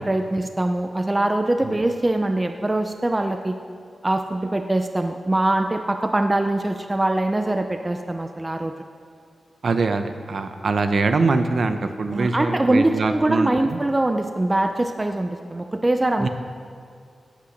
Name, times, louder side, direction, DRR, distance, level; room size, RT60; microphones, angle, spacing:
voice 1, 0.0-3.6 4.0-8.7 12.1-16.3, right 1 dB, 15° right, 6 dB, 0.5 m, -23 dB
voice 2, 9.6-13.8 16.2-16.3, right 3 dB, 50° right, 8 dB, 0.8 m, -23 dB
17.0 x 8.5 x 6.5 m, 2.2 s
wide cardioid pair, 175°, 0 cm